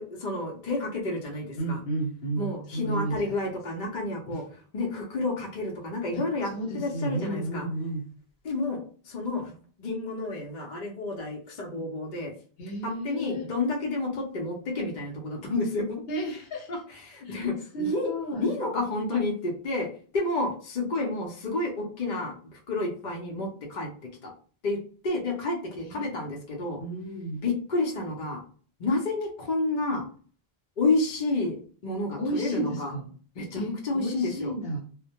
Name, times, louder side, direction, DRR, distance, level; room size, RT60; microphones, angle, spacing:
voice 1, 0.0-1.8 2.4-4.4 4.7-7.6 8.4-9.5 9.8-12.3 12.8-16.0 16.7-18.1 18.4-19.9 20.1-23.9 24.2-24.3 24.6-24.8 25.0-26.8 27.4-28.4 28.8-30.0 30.8-32.9 33.4-34.5, left 2 dB, 55° left, -1 dB, 0.7 m, -30 dB
voice 2, 1.6-3.3 6.1-6.2 6.5-8.0 12.6-13.5 16.1-16.7 17.3-17.5 17.7-18.5 25.8-26.2 26.8-27.4 32.2-33.1 33.5-34.8, right 2 dB, 75° left, 1 dB, 1.0 m, -32 dB
2.1 x 2.1 x 2.8 m, 0.43 s
omnidirectional pair, 1.0 m